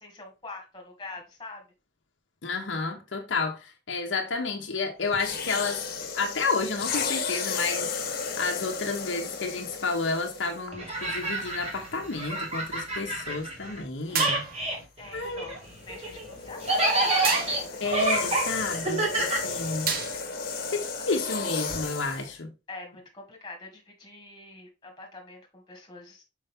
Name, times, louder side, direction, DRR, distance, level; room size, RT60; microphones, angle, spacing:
voice 1, 0.0-1.6 15.0-17.9 22.7-26.2, left 2 dB, 25° left, 2.0 m, -44 dB
voice 2, 2.4-7.9 8.4-14.5 15.1-15.4 17.8-19.9 20.7-22.5, left 4 dB, 80° left, 0.9 m, -31 dB
sound 1, 5.1-10.7 11.5-11.7 15.6-22.3, left 5 dB, 55° left, 1.2 m, -34 dB
sound 2, 10.7-13.8 14.1-20.1, right 2 dB, 35° right, 1.8 m, -28 dB
sound 3, 14.1-14.8 17.2-17.8 19.9-20.5, right 5 dB, 50° right, 1.0 m, -31 dB
5.5 x 5.1 x 3.6 m
head